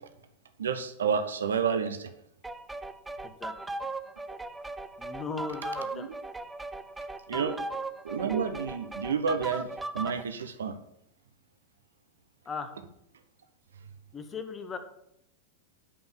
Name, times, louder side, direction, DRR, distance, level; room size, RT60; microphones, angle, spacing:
voice 1, 0.6-2.1 5.9-6.1 7.3-7.6 8.0-10.8, right 6 dB, 65° right, 9 dB, 0.9 m, -30 dB
sound 1, 2.4-10.2, right 2 dB, 10° right, 0.6 m, -38 dB
voice 2, 5.0-6.1 7.3-7.5 12.4-12.7 14.1-14.8, left 5 dB, 20° left, 8 dB, 1.3 m, -37 dB
8.7 x 5.4 x 7.2 m, 0.76 s
figure-of-eight pair, 90°, 0 cm